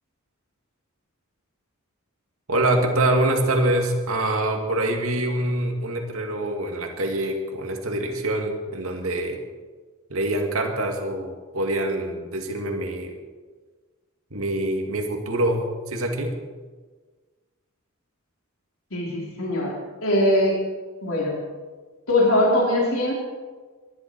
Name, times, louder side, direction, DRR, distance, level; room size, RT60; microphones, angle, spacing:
voice 1, 2.5-9.4 10.1-13.2 14.3-16.4, right 1 dB, 90° right, 3 dB, 2.2 m, -25 dB
voice 2, 18.9-20.6 21.0-21.4 22.1-23.1, left 1 dB, 85° left, -2 dB, 3.8 m, -21 dB
22.5 x 11.5 x 4.7 m, 1.4 s
head